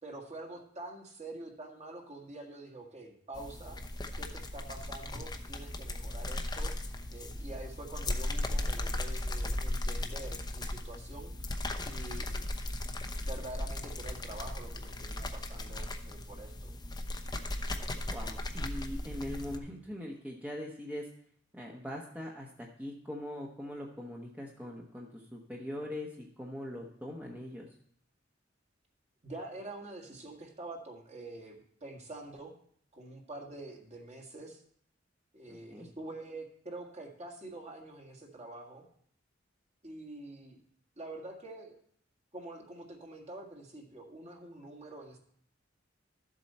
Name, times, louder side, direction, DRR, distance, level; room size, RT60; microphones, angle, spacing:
voice 1, 0.0-3.8 4.2-6.7 7.1-11.3 11.8-12.6 13.2-16.7 29.2-32.5 32.9-34.6 35.3-38.8 39.8-40.6 41.0-41.8 42.3-45.2, right 2 dB, 35° right, 1 dB, 1.8 m, -46 dB
sound 1, 3.3-19.6, left 1 dB, 20° left, 0.8 m, -37 dB
voice 2, 18.1-21.1 21.5-27.7 35.5-35.9, left 1 dB, 10° right, -1 dB, 1.0 m, -41 dB
13.0 x 7.6 x 4.3 m, 0.64 s
head